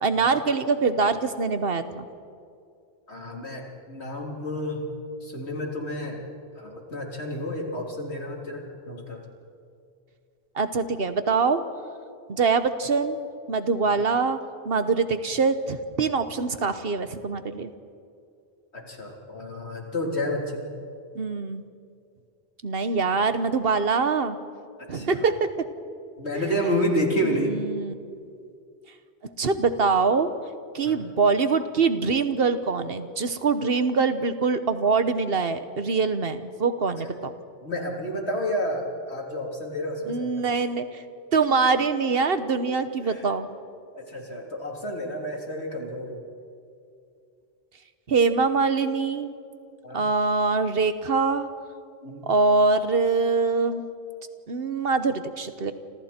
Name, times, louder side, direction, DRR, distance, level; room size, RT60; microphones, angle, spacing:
voice 1, 0.0-2.1 10.5-11.6 12.3-17.7 21.1-21.6 22.6-24.4 24.9-25.5 26.3-26.7 27.2-27.9 29.4-30.3 30.7-37.3 40.1-41.0 41.3-43.5 48.1-49.3 49.9-51.5 52.3-53.8 54.5-55.7, right 4 dB, 65° right, 10 dB, 1.3 m, -24 dB
voice 2, 3.1-4.9 5.2-6.2 6.6-9.2 18.7-20.7 24.9-25.2 26.2-27.5 30.8-31.0 37.0-37.1 37.6-40.3 43.0-43.2 43.9-46.2 49.8-50.0 52.0-52.3, equal, 85° left, 0 dB, 4.0 m, -30 dB
30.0 x 26.5 x 4.5 m, 2.4 s
omnidirectional pair, 1.1 m